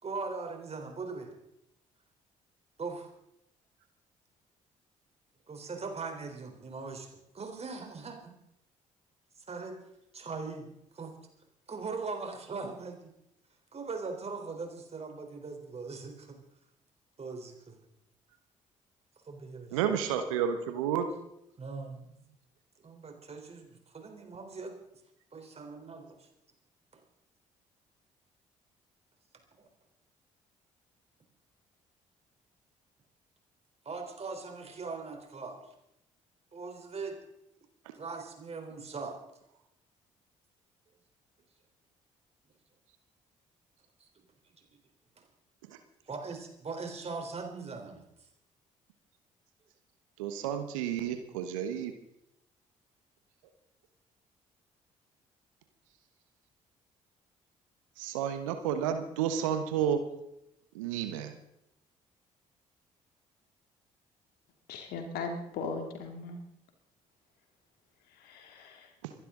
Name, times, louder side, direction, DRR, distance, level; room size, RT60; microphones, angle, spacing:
voice 1, 0.0-1.4 2.8-3.1 5.5-8.3 9.4-9.8 10.1-10.7 10.9-11.2 11.7-13.1 13.7-16.4 17.2-17.8 19.3-20.1 21.6-22.1 22.8-24.8 25.3-26.3 26.9-27.0 29.6-29.7 33.9-35.6 36.5-37.2 37.9-39.2 44.0-44.2 44.7-44.8 45.2-45.3 46.1-48.0, right 4 dB, 40° right, 4 dB, 3.8 m, -40 dB
voice 2, 19.7-21.1 45.7-45.8 50.2-51.9 58.0-60.0 60.7-61.3, right 9 dB, 80° right, 8 dB, 1.2 m, -31 dB
voice 3, 64.7-66.4 68.1-68.9, left 4 dB, 70° left, 5 dB, 2.5 m, -38 dB
25.5 x 11.5 x 3.8 m, 0.80 s
hypercardioid pair, 45°, 17 cm